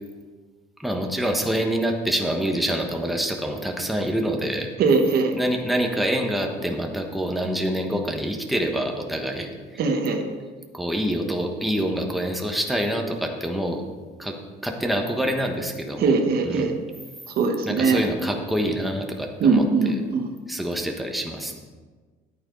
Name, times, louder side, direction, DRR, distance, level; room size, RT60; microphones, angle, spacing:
voice 1, 0.8-4.7 5.3-9.8 10.7-13.8 14.2-14.4 14.6-16.1 16.4-16.7 17.7-19.6 20.5-21.6, equal, ahead, 2 dB, 1.2 m, -26 dB
voice 2, 4.8-5.3 9.8-10.2 16.0-16.7 17.3-18.0 19.4-20.3, right 4 dB, 65° right, 5 dB, 1.3 m, -20 dB
11.0 x 8.8 x 3.9 m, 1.4 s
cardioid pair, 110°, 17 cm